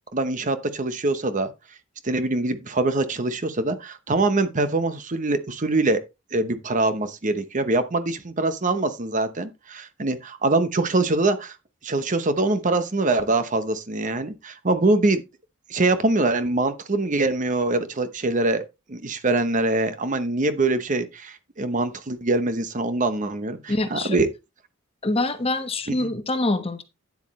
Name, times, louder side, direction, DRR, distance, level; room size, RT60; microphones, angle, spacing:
voice 1, 0.1-1.5 2.0-6.0 6.3-11.6 11.8-15.2 15.7-18.6 18.9-24.3 26.0-26.1, right 2 dB, 40° right, 0.9 m, -23 dB
voice 2, 23.7-24.2 25.0-26.8, left 2 dB, 30° left, 1.1 m, -25 dB
9.7 x 8.2 x 3.1 m
head